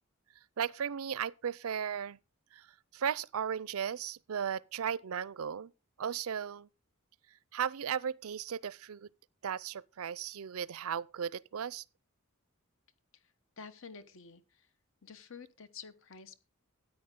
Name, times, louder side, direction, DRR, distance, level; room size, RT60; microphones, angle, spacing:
voice 1, 0.6-2.2 2.5-2.7 2.9-5.7 6.0-6.7 7.5-9.1 9.4-11.8, right 8 dB, 75° right, 0.5 m, -36 dB
voice 2, 13.1-14.7 15.0-16.4, left 5 dB, 60° left, 1.1 m, -50 dB
13.0 x 9.7 x 3.7 m
head